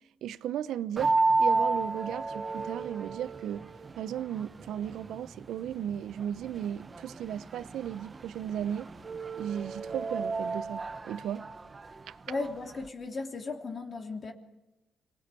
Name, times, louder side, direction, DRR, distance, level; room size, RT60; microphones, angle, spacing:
voice 1, 0.2-3.7 3.9-8.9 9.4-11.4 12.1-12.2, right 10 dB, 80° right, 0.9 m, -35 dB
sound 1, 1.0-12.9, right 3 dB, 30° right, 1.2 m, -33 dB
voice 2, 12.3-14.3, left 3 dB, 40° left, 3.1 m, -36 dB
26.5 x 19.5 x 8.5 m
cardioid pair, 90°, 0 cm